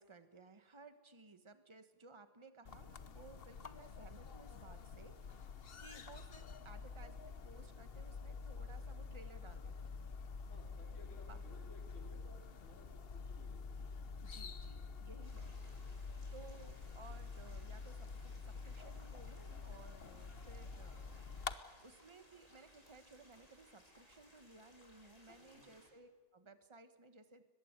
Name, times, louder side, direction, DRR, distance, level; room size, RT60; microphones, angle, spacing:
voice 1, 0.0-10.1 11.1-11.4 14.2-15.8 16.3-27.5, right 3 dB, 20° right, 10 dB, 0.9 m, -59 dB
sound 1, 2.6-21.5, left 5 dB, 85° left, 0.5 m, -48 dB
voice 2, 10.5-13.7 25.3-25.8, left 1 dB, 30° left, 1 dB, 4.5 m, -60 dB
sound 2, 15.2-25.9, left 1 dB, 15° left, 4.7 m, -65 dB
22.5 x 21.0 x 8.2 m, 1.4 s
omnidirectional pair, 2.4 m